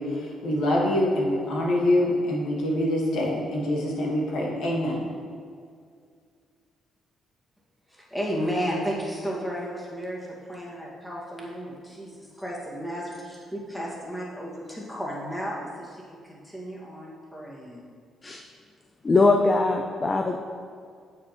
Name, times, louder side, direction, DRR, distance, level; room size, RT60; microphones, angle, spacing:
voice 1, 0.0-5.1, left 1 dB, 80° left, -3 dB, 1.5 m, -25 dB
voice 2, 7.9-17.9, equal, 5° left, -5 dB, 1.8 m, -33 dB
voice 3, 19.0-20.4, left 3 dB, 30° left, 4 dB, 0.4 m, -21 dB
8.4 x 6.7 x 3.0 m, 2.2 s
cardioid pair, 90°, 0 cm